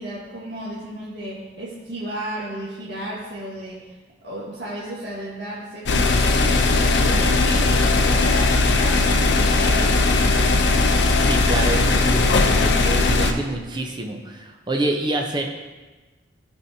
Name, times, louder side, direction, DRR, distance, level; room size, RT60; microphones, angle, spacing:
voice 1, 0.0-4.0 4.2-10.5, right 1 dB, 65° right, -7 dB, 1.3 m, -34 dB
sound 1, 5.9-13.3, left 3 dB, 65° left, 0.5 m, -18 dB
voice 2, 10.9-15.5, right 2 dB, 25° right, 2 dB, 0.7 m, -27 dB
13.0 x 4.4 x 2.8 m, 1.2 s
head